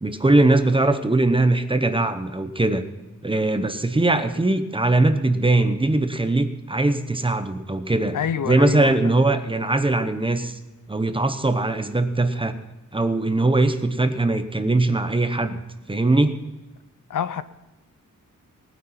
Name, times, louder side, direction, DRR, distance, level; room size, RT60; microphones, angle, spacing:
voice 1, 0.0-2.8 3.2-8.2 8.4-10.6 10.9-12.6 12.9-15.6 15.9-16.4, right 2 dB, 15° right, 0.8 m, -21 dB
voice 2, 8.1-9.0 17.1-17.4, left 8 dB, 70° left, 0.7 m, -27 dB
19.0 x 9.7 x 5.7 m
wide cardioid pair, 170°, 32 cm